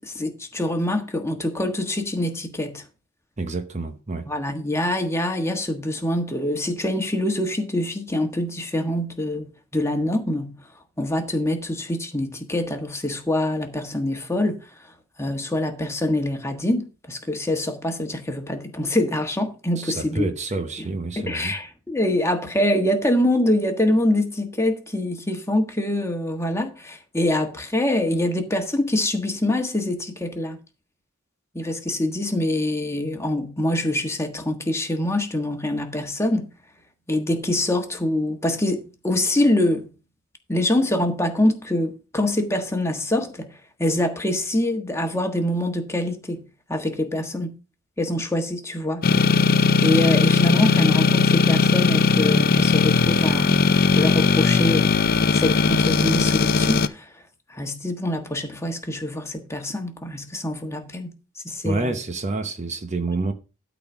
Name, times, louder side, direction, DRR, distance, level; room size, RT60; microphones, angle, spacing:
voice 1, 0.0-2.8 4.2-9.5 9.7-10.6 11.0-14.6 15.2-20.3 20.8-20.9 21.2-30.6 31.5-36.5 37.1-39.9 40.5-43.5 43.8-47.6 48.0-49.1 49.8-53.6 53.9-54.9 55.3-57.1 57.5-61.1 61.4-62.0, left 1 dB, 15° left, 1.4 m, -25 dB
voice 2, 3.4-4.3 19.8-21.5 61.6-63.3, right 3 dB, 35° right, 0.9 m, -28 dB
sound 1, 49.0-56.9, left 4 dB, 45° left, 0.6 m, -18 dB
12.5 x 4.2 x 6.0 m
head